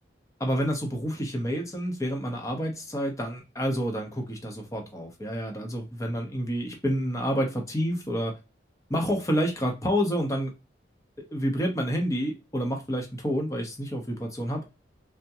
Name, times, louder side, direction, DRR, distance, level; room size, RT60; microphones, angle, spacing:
voice 1, 0.4-8.4 8.9-10.5 11.2-14.7, equal, 15° left, 0.7 m, -29 dB
3.4 x 2.1 x 2.7 m
head